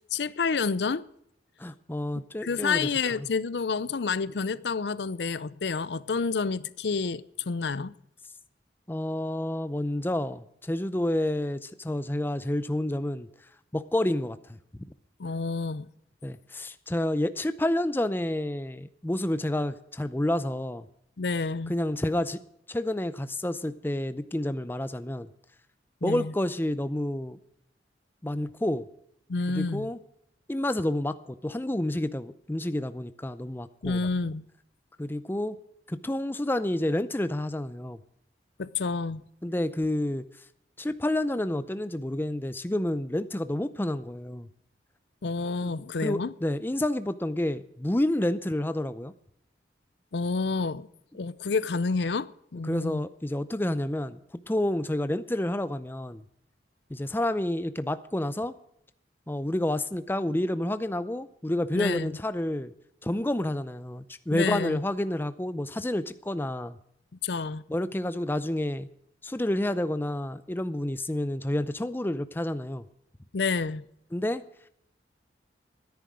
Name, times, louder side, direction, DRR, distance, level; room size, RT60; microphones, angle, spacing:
voice 1, 0.1-1.0 2.4-7.9 15.2-15.9 21.2-21.7 26.0-26.3 29.3-29.9 33.8-34.5 38.6-39.2 45.2-46.3 50.1-50.9 51.1-53.0 61.7-62.1 64.3-64.8 67.2-67.6 73.3-73.8, left 4 dB, 70° left, 0.6 m, -29 dB
voice 2, 1.6-2.9 3.2-3.3 8.9-13.3 13.7-14.6 16.2-20.8 21.7-22.4 22.7-25.3 26.0-27.4 28.2-28.9 29.5-30.0 30.5-34.0 35.0-35.6 35.9-38.0 39.4-40.2 40.8-44.5 45.6-45.7 46.0-49.1 52.7-54.2 54.5-56.2 56.9-58.5 59.3-62.7 63.0-66.8 67.7-68.9 69.2-72.8 74.1-74.4, left 1 dB, 10° left, 0.5 m, -29 dB
13.0 x 10.5 x 6.2 m
head